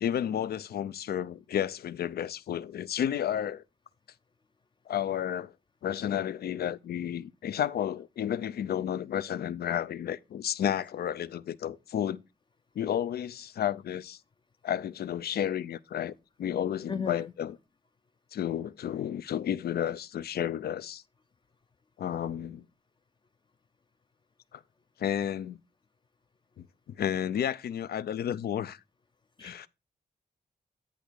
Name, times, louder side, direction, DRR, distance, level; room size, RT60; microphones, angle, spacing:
voice 1, 0.0-3.6 4.9-5.5 5.8-12.2 12.8-14.2 14.6-16.1 16.4-17.6 18.3-21.0 22.0-22.6 24.5-24.6 25.0-25.6 26.6-28.8 29.4-29.7, left 10 dB, 75° left, 0.5 m, -32 dB
voice 2, 16.9-17.3 29.4-29.7, left 6 dB, 30° left, 0.5 m, -35 dB
10.0 x 3.4 x 6.3 m
wide cardioid pair, 150°, 16 cm